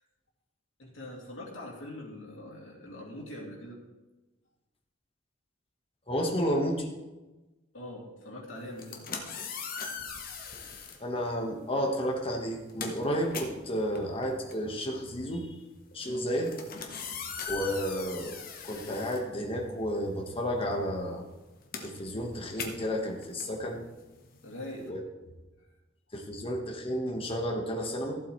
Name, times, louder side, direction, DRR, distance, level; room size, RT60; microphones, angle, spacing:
voice 1, 0.8-3.8 7.7-9.0 16.0-16.3 24.4-25.0, left 1 dB, 75° left, -2 dB, 2.6 m, -43 dB
voice 2, 6.1-6.9 11.0-15.5 15.9-16.5 17.5-18.4 18.6-21.2 21.8-23.8 24.9-25.0 26.1-28.2, equal, 30° left, 1 dB, 1.4 m, -31 dB
sound 1, 8.7-11.0 11.9-12.1 12.4-19.9 20.2-24.9, left 5 dB, 45° left, 1.1 m, -41 dB
14.5 x 7.9 x 3.2 m, 1.1 s
head